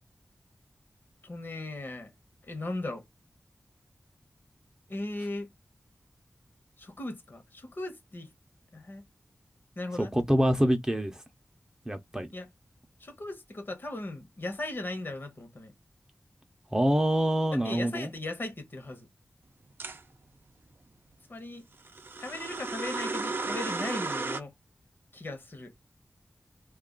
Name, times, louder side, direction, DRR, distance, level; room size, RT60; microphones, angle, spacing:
voice 1, 1.2-2.1 2.4-3.0 4.9-5.5 6.8-8.3 8.7-9.0 9.8-10.1 12.3-12.5 13.0-15.7 17.5-19.1 21.3-21.7 22.2-24.5 25.1-25.7, left 2 dB, 55° left, 1.0 m, -38 dB
voice 2, 10.0-11.2 11.9-12.3 16.7-18.1, equal, 15° right, 0.6 m, -26 dB
sound 1, 19.8-20.0 21.8-24.4, right 3 dB, 55° right, 0.5 m, -34 dB
2.4 x 2.4 x 3.8 m
wide cardioid pair, 90°, 4 cm